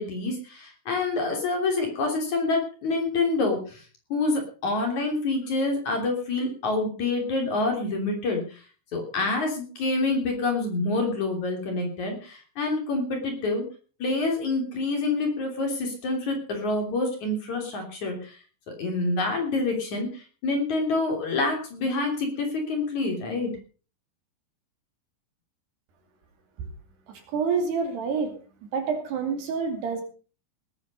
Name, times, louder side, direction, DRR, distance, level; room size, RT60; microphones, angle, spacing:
voice 1, 0.0-3.8 4.1-8.6 8.9-13.6 14.0-18.4 18.8-23.5, left 3 dB, 45° left, 2 dB, 4.1 m, -27 dB
voice 2, 27.1-28.4 28.6-30.0, right 5 dB, 65° right, 5 dB, 4.6 m, -28 dB
19.0 x 9.6 x 5.4 m, 0.39 s
omnidirectional pair, 5.1 m